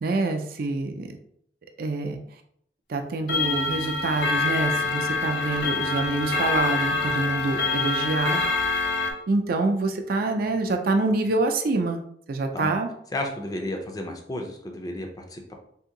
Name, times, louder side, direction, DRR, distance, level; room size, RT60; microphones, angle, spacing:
voice 1, 0.0-1.2 1.8-2.2 2.9-8.4 9.3-12.0 12.3-12.9, right 2 dB, 55° right, 5 dB, 0.4 m, -26 dB
Clock, 3.3-9.1, left 3 dB, 85° left, 0.6 m, -26 dB
voice 2, 13.1-15.5, left 1 dB, 20° left, 3 dB, 0.4 m, -32 dB
2.8 x 2.6 x 3.7 m, 0.69 s
head